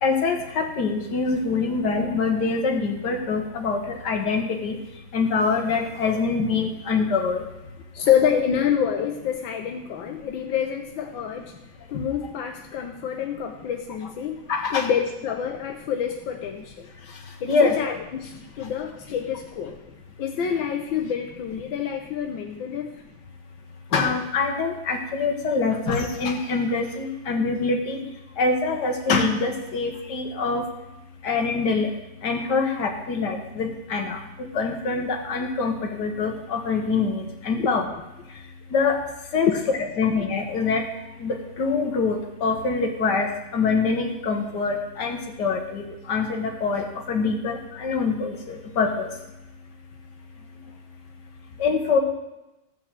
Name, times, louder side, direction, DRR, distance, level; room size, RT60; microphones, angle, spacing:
voice 1, 0.0-4.8 5.1-7.4 14.5-14.9 17.5-17.8 23.9-28.0 28.4-30.6 31.2-31.9 32.2-37.8 38.7-39.0 39.3-39.5 40.0-40.8 41.2-49.1 51.6-52.0, left 4 dB, 60° left, 3 dB, 2.1 m, -24 dB
voice 2, 7.9-11.5 11.9-14.5 14.7-16.9 17.4-19.8 20.2-22.9 37.6-37.7 39.5-39.6, left 8 dB, 85° left, 4 dB, 1.6 m, -27 dB
15.0 x 5.8 x 7.4 m, 0.95 s
omnidirectional pair, 2.1 m